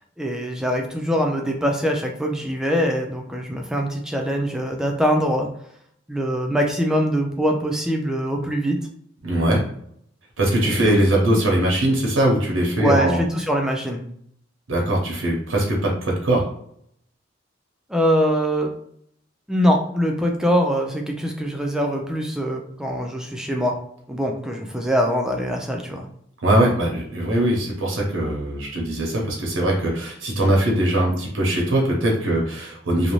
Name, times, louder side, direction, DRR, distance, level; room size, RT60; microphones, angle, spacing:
voice 1, 0.2-5.5 6.1-8.8 10.6-11.4 12.8-14.0 17.9-18.7 19.5-23.8 24.1-26.1, equal, 5° right, 1 dB, 0.3 m, -23 dB
voice 2, 9.2-9.6 10.4-13.2 14.7-16.4 26.4-33.1, right 1 dB, 90° right, -1 dB, 0.7 m, -21 dB
2.5 x 2.0 x 3.0 m, 0.69 s
head